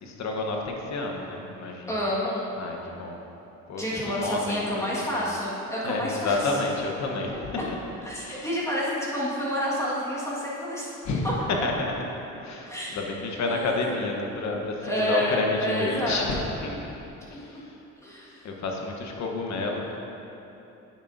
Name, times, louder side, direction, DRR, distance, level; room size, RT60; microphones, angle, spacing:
voice 1, 0.0-1.9 2.6-3.2 3.7-5.1 5.8-7.8 8.2-8.5 11.0-11.7 12.4-16.8 17.3-17.4 18.4-20.0, left 3 dB, 65° left, 1 dB, 1.1 m, -30 dB
voice 2, 1.9-2.5 3.8-6.5 7.6-7.7 8.0-10.9 11.2-11.3 12.7-13.1 13.5-13.9 14.8-16.5 17.3-17.6 18.0-18.4, equal, 10° left, -7 dB, 1.8 m, -29 dB
9.5 x 7.2 x 2.7 m, 3.0 s
cardioid pair, 90°, 30 cm